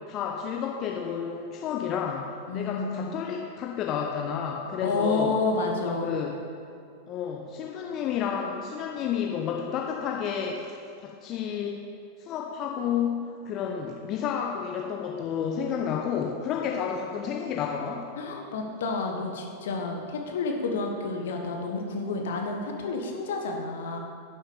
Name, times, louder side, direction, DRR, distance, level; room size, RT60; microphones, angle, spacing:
voice 1, 0.1-2.3 2.5-5.3 5.7-6.4 7.1-11.8 12.2-18.1, left 7 dB, 35° left, 0 dB, 0.8 m, -31 dB
voice 2, 2.5-3.1 4.8-6.2 18.1-24.0, left 3 dB, 60° left, 2 dB, 1.3 m, -30 dB
10.0 x 7.2 x 5.1 m, 2.5 s
figure-of-eight pair, 90°, 0 cm